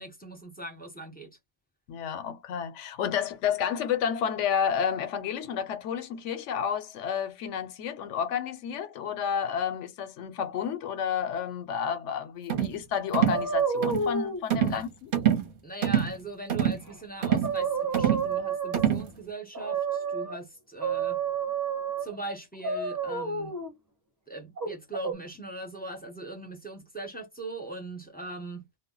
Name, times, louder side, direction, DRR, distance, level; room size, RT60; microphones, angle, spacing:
voice 1, 0.0-1.4 14.6-14.8 15.6-21.2 22.0-23.5 24.3-28.7, right 1 dB, 10° left, 0.6 m, -40 dB
voice 2, 1.9-15.1, left 8 dB, 85° left, 0.9 m, -30 dB
sound 1, 12.5-12.8 13.1-13.4 13.8-14.1 14.5-14.8 15.1-15.5 15.8-16.1 16.5-16.8 17.2-17.6 17.9-18.3 18.7-19.1, right 10 dB, 55° right, 0.8 m, -25 dB
sound 2, 13.3-14.4 16.9-17.0 17.3-19.0 19.5-20.4 20.8-22.1 22.6-23.7 24.6-25.1, right 6 dB, 15° right, 0.8 m, -30 dB
2.2 x 2.1 x 3.7 m
omnidirectional pair, 1.2 m